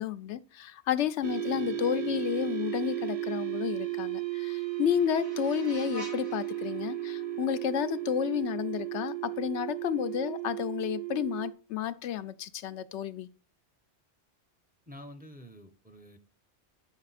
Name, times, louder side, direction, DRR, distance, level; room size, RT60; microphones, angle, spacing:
voice 1, 0.0-13.3, left 10 dB, 85° left, 0.9 m, -31 dB
sound 1, 1.2-11.5, right 12 dB, 55° right, 1.1 m, -34 dB
sound 2, 3.7-8.7, equal, 75° right, 2.5 m, -50 dB
voice 2, 14.9-16.2, left 1 dB, 10° right, 0.8 m, -48 dB
8.6 x 6.1 x 4.1 m
omnidirectional pair, 1.2 m